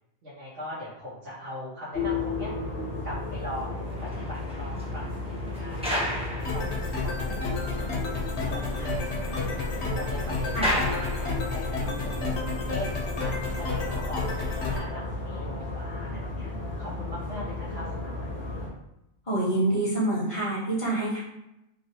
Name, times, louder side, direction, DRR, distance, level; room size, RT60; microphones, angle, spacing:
voice 1, 0.2-2.5 3.0-6.2 6.5-6.7 7.0-9.5 9.9-16.5 16.8-18.7, left 1 dB, 65° right, -10 dB, 1.0 m, -40 dB
sound 1, 1.9-18.7, left 2 dB, 65° left, 1.0 m, -34 dB
sound 2, 3.7-7.4 7.7-7.8 8.2-8.3 8.5-11.8 12.5-12.7, equal, 5° right, 0.6 m, -35 dB
sound 3, 6.4-14.8, left 3 dB, 90° left, 0.9 m, -31 dB
voice 2, 19.3-21.2, right 2 dB, 30° left, -6 dB, 0.9 m, -26 dB
3.0 x 2.6 x 2.7 m, 0.87 s
omnidirectional pair, 1.1 m